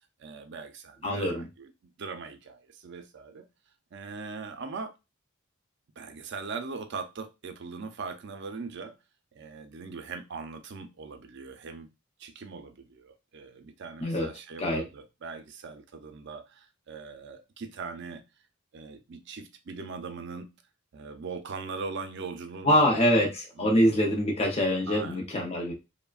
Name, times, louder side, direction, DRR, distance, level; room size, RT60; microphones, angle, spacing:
voice 1, 0.2-3.5 3.9-4.9 6.0-9.0 9.3-11.9 12.2-18.2 18.7-20.5 20.9-23.3 23.6-24.1 24.9-25.2, right 4 dB, 60° right, 0.5 m, -40 dB
voice 2, 1.0-1.4 14.0-14.3 14.6-14.8 22.6-25.7, equal, 30° left, 0.6 m, -24 dB
3.2 x 2.1 x 2.3 m
head